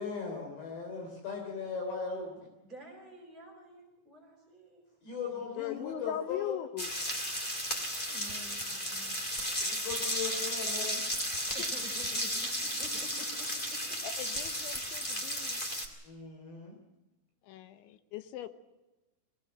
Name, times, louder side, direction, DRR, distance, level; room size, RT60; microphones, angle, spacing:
voice 1, 0.0-2.5 5.0-6.5 9.6-11.0 16.0-16.8, left 5 dB, 60° left, 1 dB, 5.3 m, -38 dB
voice 2, 2.6-4.8 7.5-7.6 7.9-9.3 11.5-12.3 12.6-13.6, right 1 dB, 10° right, -2 dB, 4.5 m, -50 dB
voice 3, 5.5-6.9 11.4-11.7 14.0-15.6 17.4-18.5, left 11 dB, 75° left, 10 dB, 3.2 m, -40 dB
sound 1, 6.8-15.9, equal, 20° left, 1.4 m, -34 dB
22.5 x 18.0 x 7.8 m, 1.0 s
omnidirectional pair, 5.9 m